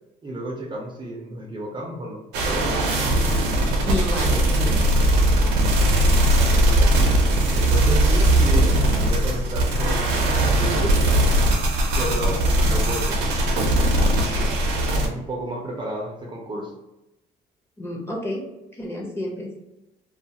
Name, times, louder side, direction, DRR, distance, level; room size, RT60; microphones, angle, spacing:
voice 1, 0.2-2.8 6.3-6.9 7.5-10.9 11.9-13.2 14.2-14.5 14.9-16.7, right 1 dB, 25° right, -1 dB, 0.5 m, -32 dB
sound 1, 2.3-15.1, right 1 dB, 90° right, 0.6 m, -19 dB
voice 2, 3.9-4.8 17.8-18.4 18.8-19.5, left 1 dB, 15° left, -3 dB, 0.8 m, -30 dB
2.4 x 2.3 x 2.8 m, 0.94 s
cardioid pair, 110°, 17 cm